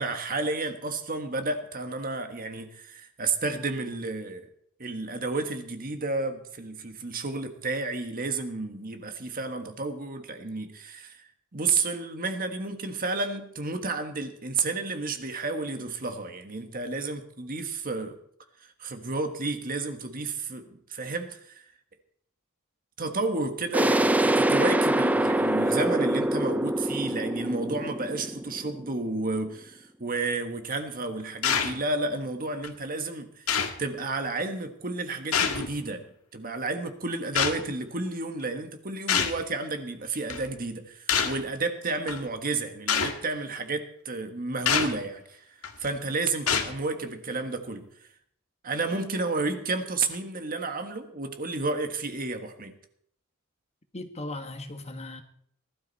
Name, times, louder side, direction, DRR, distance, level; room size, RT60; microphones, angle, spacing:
voice 1, 0.0-4.5 4.8-18.2 18.6-21.6 23.0-36.0 36.3-45.5 45.8-47.9 48.6-52.8, right 3 dB, 40° right, 1.5 m, -31 dB
sound 1, 23.7-29.2, right 1 dB, 5° right, 0.5 m, -25 dB
sound 2, 31.4-31.8 32.6-32.7 33.5-33.8 35.3-35.7 37.3-37.6 39.1-39.4 40.3-40.5 41.1-41.4 42.1-42.2 42.9-43.1 44.7-44.9 45.6-45.9 46.5-46.8, left 7 dB, 80° left, 1.8 m, -25 dB
voice 2, 53.9-55.2, left 2 dB, 30° left, 1.5 m, -37 dB
20.0 x 13.0 x 4.2 m
head